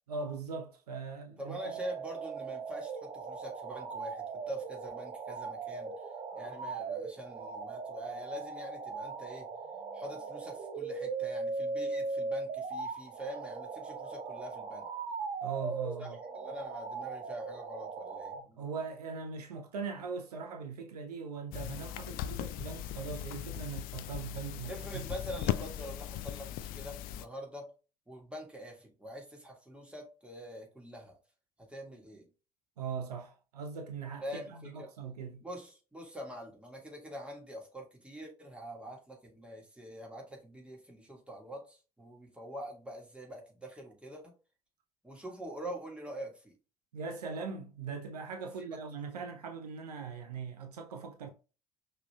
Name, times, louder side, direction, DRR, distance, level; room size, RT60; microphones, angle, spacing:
voice 1, 0.1-1.6 15.4-16.2 18.3-25.1 32.8-35.4 46.9-51.3, right 5 dB, 75° right, 0.7 m, -40 dB
voice 2, 1.4-5.9 6.3-9.5 9.9-14.9 16.0-16.1 16.3-18.6 24.7-27.7 28.1-31.2 31.7-32.3 34.2-34.9 35.4-44.3 45.0-46.5 48.6-48.7, equal, 5° right, 1.8 m, -45 dB
sound 1, 1.6-18.4, right 4 dB, 40° right, 0.9 m, -39 dB
sound 2, 21.5-27.3, left 12 dB, 45° left, 0.4 m, -38 dB
5.8 x 3.3 x 2.3 m
figure-of-eight pair, 55°, 20 cm